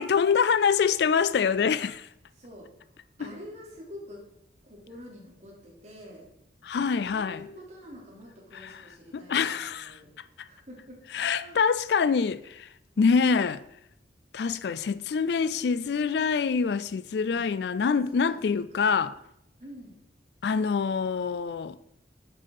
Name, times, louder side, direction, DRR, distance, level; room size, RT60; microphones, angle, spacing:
voice 1, 0.0-2.1 6.6-7.5 8.6-8.7 9.1-10.0 11.1-12.7 13.0-13.6 14.3-19.2 20.4-21.8, left 6 dB, 65° left, 0.4 m, -25 dB
voice 2, 2.4-2.7 3.2-4.3 4.6-6.3 6.7-10.1 10.5-11.1 11.4-11.6 17.3-17.4 18.1-18.9 19.6-20.0, left 1 dB, 40° right, 2.9 m, -47 dB
7.5 x 5.7 x 5.3 m
head